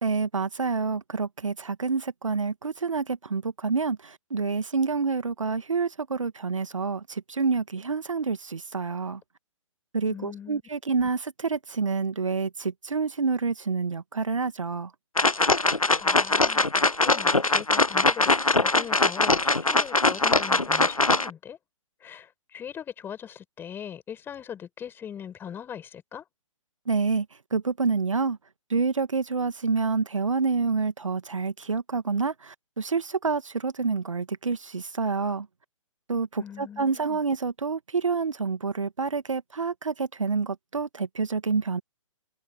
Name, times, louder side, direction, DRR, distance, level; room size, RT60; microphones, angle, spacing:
voice 1, 0.0-9.2 9.9-14.9 26.9-28.4 28.7-35.5 36.1-41.8, right 4 dB, 70° right, 1.6 m, -28 dB
voice 2, 10.1-11.1 16.0-21.6 22.0-26.3 36.4-37.2, left 8 dB, 10° left, 5.3 m, -41 dB
sound 1, 15.2-21.3, left 3 dB, 90° left, 0.7 m, -22 dB
figure-of-eight pair, 130°, 17 cm